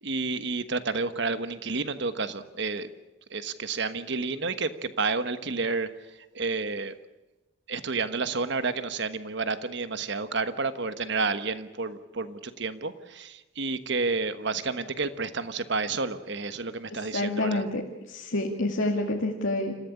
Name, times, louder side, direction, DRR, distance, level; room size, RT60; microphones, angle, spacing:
voice 1, 0.0-2.9 3.3-5.9 6.3-6.9 7.7-17.6, right 4 dB, 60° right, 12 dB, 1.3 m, -30 dB
voice 2, 16.9-17.8 18.1-19.7, left 2 dB, 70° left, 0 dB, 2.1 m, -28 dB
27.5 x 15.0 x 8.5 m, 1.0 s
head